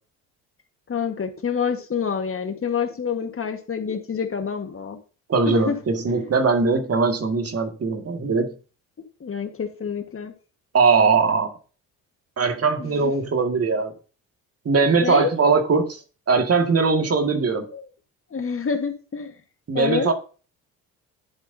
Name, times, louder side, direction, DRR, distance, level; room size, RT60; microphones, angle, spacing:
voice 1, 0.9-5.0 5.5-5.7 6.1-6.2 9.2-10.3 15.0-15.3 17.7-17.9 18.3-19.3 19.7-20.1, left 6 dB, 35° left, 1.5 m, -27 dB
voice 2, 5.3-8.5 10.7-11.5 12.4-13.9 14.7-16.0 16.3-17.7 19.7-20.1, right 4 dB, 35° right, 2.0 m, -20 dB
11.0 x 8.2 x 2.7 m
supercardioid pair, 65°, 39 cm